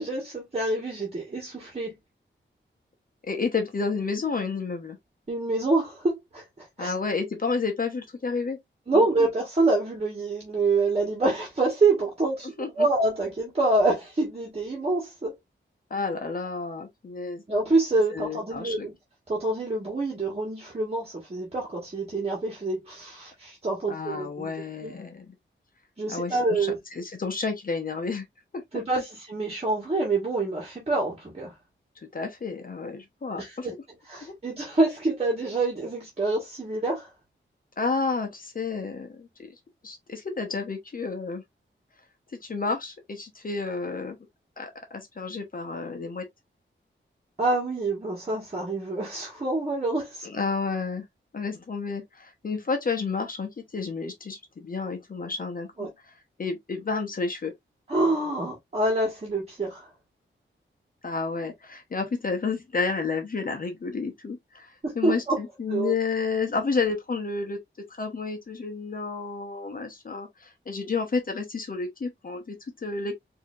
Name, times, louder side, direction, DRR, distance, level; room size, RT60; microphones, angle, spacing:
voice 1, 0.0-1.9 5.3-6.9 8.9-15.3 17.5-18.9 19.3-24.5 24.8-25.0 26.0-26.8 28.7-31.5 33.4-33.7 34.1-37.1 47.4-50.3 55.8-55.9 57.9-59.9 64.8-65.4 65.7-65.9, right 2 dB, 30° right, 1.4 m, -26 dB
voice 2, 3.3-5.0 6.8-8.6 8.9-9.3 12.6-12.7 15.9-17.4 18.1-18.9 23.9-25.3 26.1-28.3 32.0-33.7 34.2-34.3 37.8-39.3 39.8-41.4 42.4-44.2 44.6-46.3 50.2-51.0 51.3-56.1 56.4-57.5 61.0-64.7 64.9-67.6 67.9-73.1, left 4 dB, 45° left, 0.9 m, -31 dB
4.8 x 2.8 x 2.4 m
wide cardioid pair, 145°, 20 cm